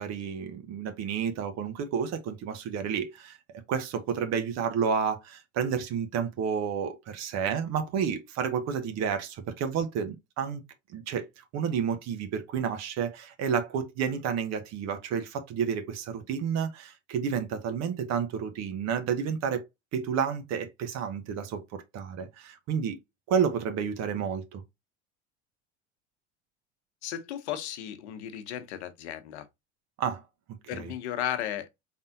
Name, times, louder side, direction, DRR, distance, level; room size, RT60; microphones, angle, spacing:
voice 1, 0.0-3.4 3.7-10.6 10.9-11.2 11.5-19.6 19.9-23.0 23.3-24.6 30.0-30.2 30.7-30.9, right 7 dB, 50° right, 1.0 m, -30 dB
voice 2, 27.0-29.4 30.7-31.7, left 11 dB, 70° left, 1.0 m, -35 dB
4.1 x 3.6 x 2.6 m
hypercardioid pair, 75°, 35 cm